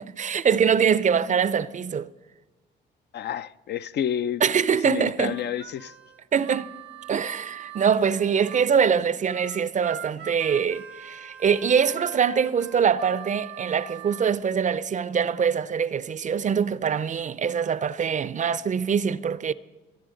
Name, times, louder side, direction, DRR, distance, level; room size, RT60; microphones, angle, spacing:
voice 1, 0.0-2.1 4.4-5.3 6.3-6.7 7.1-19.5, right 7 dB, 40° right, 0.5 m, -23 dB
voice 2, 3.1-4.4 4.8-5.9, left 9 dB, 60° left, 0.5 m, -29 dB
Harmonica, 5.2-8.7 9.3-14.4, right 11 dB, 75° right, 0.9 m, -43 dB
24.0 x 9.6 x 5.1 m
cardioid pair, 90°, 20 cm